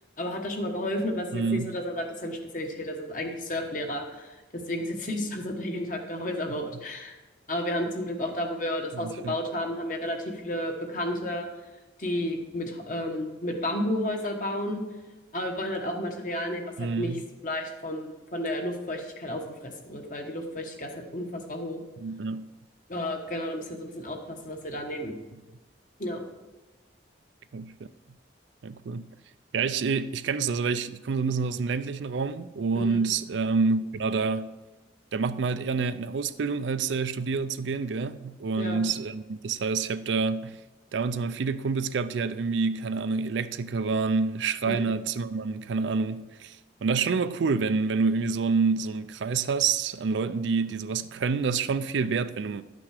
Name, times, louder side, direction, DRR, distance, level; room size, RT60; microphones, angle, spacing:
voice 1, 0.2-7.2 7.5-11.5 12.0-14.8 15.3-17.1 17.4-21.8 22.9-25.1 26.0-26.2 32.7-33.0 38.6-38.8 44.7-44.9, left 1 dB, 45° left, 1.2 m, -32 dB
voice 2, 1.3-1.8 8.9-9.3 16.8-17.2 22.0-22.5 27.5-27.7 28.6-29.1 29.5-34.5 35.1-40.6 40.9-52.6, right 4 dB, 75° right, 0.4 m, -28 dB
11.5 x 6.1 x 4.9 m
head